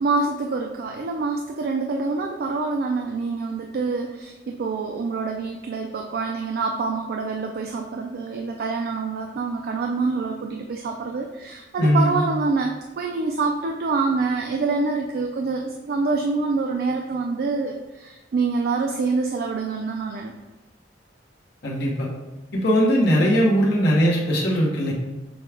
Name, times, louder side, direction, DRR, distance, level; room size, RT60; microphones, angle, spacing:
voice 1, 0.0-20.3, right 4 dB, 55° right, 2 dB, 0.3 m, -26 dB
voice 2, 11.8-12.3 21.6-22.1 22.5-24.9, equal, 65° left, -5 dB, 1.0 m, -20 dB
6.2 x 2.2 x 3.3 m, 1.1 s
head